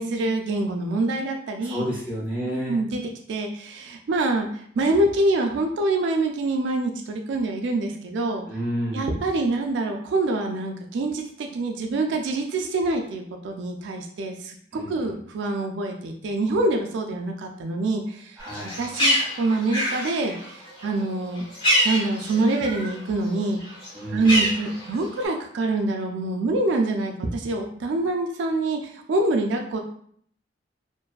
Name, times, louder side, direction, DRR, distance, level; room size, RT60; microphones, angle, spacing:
voice 1, 0.0-1.9 2.5-3.0 3.3-8.4 8.9-18.4 18.8-21.5 21.8-23.6 24.1-29.8, right 2 dB, 70° right, 3 dB, 0.3 m, -25 dB
voice 2, 1.6-2.8 8.4-9.1 14.7-15.1 18.4-18.8 23.9-24.4, equal, 10° right, -6 dB, 0.7 m, -30 dB
Bird, 18.4-23.0 23.3-25.2, equal, 25° left, 0.8 m, -26 dB
2.5 x 2.3 x 2.3 m, 0.62 s
head